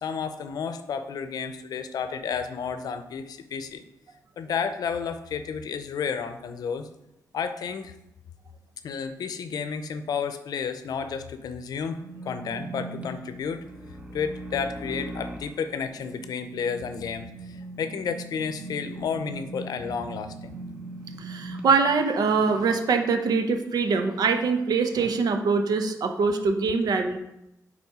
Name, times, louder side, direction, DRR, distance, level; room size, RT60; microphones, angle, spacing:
voice 1, 0.0-3.8 4.4-6.9 7.3-7.9 8.8-12.0 12.2-13.6 14.1-20.5, left 6 dB, 80° left, 10 dB, 0.6 m, -31 dB
sound 1, 12.0-21.6, right 2 dB, 20° right, 0.9 m, -40 dB
voice 2, 21.2-27.2, right 4 dB, 75° right, 6 dB, 0.8 m, -23 dB
7.0 x 4.3 x 4.8 m, 0.89 s
wide cardioid pair, 140°, 7 cm